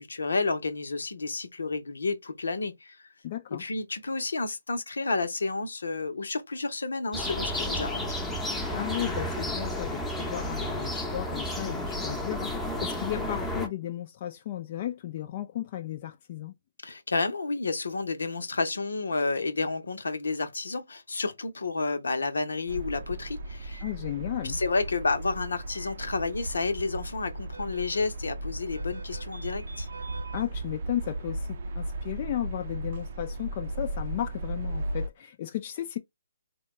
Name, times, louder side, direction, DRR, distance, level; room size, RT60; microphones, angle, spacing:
voice 1, 0.0-3.0 3.6-8.2 16.8-23.8 24.4-29.9, left 3 dB, 75° left, 0.8 m, -30 dB
voice 2, 3.2-3.6 8.7-16.5 23.8-24.6 30.3-36.0, left 12 dB, 40° left, 0.5 m, -34 dB
sound 1, 7.1-13.7, left 1 dB, 5° left, 0.8 m, -32 dB
sound 2, 22.7-35.1, right 2 dB, 55° right, 0.6 m, -36 dB
sound 3, 22.8-23.4 23.7-23.9 24.5-25.1 25.7-25.9 26.4-27.0 27.5-30.4, right 1 dB, 85° right, 1.0 m, -42 dB
4.3 x 2.3 x 3.0 m
figure-of-eight pair, 135°, 0 cm